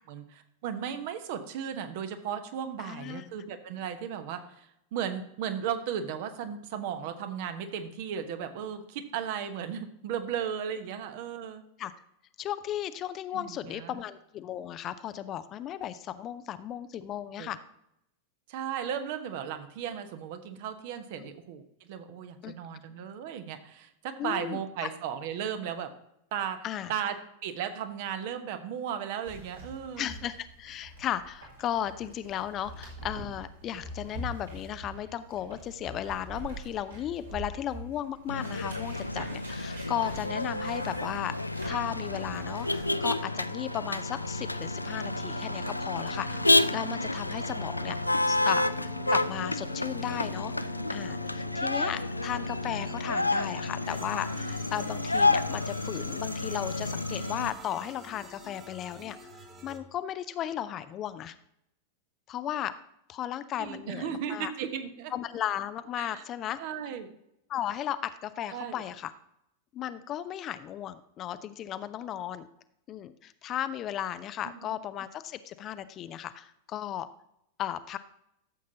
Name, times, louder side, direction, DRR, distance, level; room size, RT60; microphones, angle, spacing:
voice 1, 0.1-11.6 13.3-14.0 17.4-17.5 18.5-21.6 21.9-25.9 26.3-26.6 26.9-27.1 27.4-30.1 52.8-53.1 53.5-53.6 63.6-65.1 66.0-66.2 66.6-67.1 68.5-68.8, right 8 dB, 50° right, 8 dB, 1.0 m, -35 dB
voice 2, 2.8-3.3 11.8-11.9 12.4-17.6 21.2-21.3 22.4-22.5 24.2-24.9 26.6-26.9 30.0-41.3 41.7-48.0 48.3-59.2 59.6-61.3 62.3-62.7 63.1-64.5 65.1-66.6 67.5-69.1 69.7-72.5 72.9-77.1 77.6-78.0, left 11 dB, 30° left, 13 dB, 0.5 m, -35 dB
sound 1, 29.2-42.8, right 2 dB, 75° right, 3.3 m, -44 dB
Motor vehicle (road), 38.3-57.5, left 2 dB, 85° left, 0.3 m, -30 dB
sound 2, 42.0-59.8, right 2 dB, 20° right, 1.2 m, -48 dB
13.0 x 7.3 x 2.8 m, 0.77 s
figure-of-eight pair, 90°, 0 cm